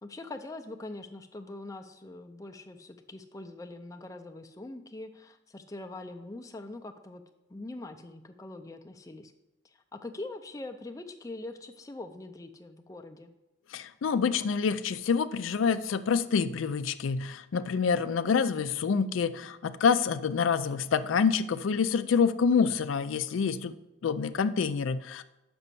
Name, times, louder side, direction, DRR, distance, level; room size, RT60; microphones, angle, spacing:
voice 1, 0.0-7.2 7.5-9.3 9.9-13.3, left 2 dB, 15° left, 5 dB, 0.4 m, -43 dB
voice 2, 13.7-23.7 24.0-25.2, left 6 dB, 85° left, 12 dB, 0.4 m, -27 dB
6.0 x 5.4 x 6.8 m, 0.96 s
head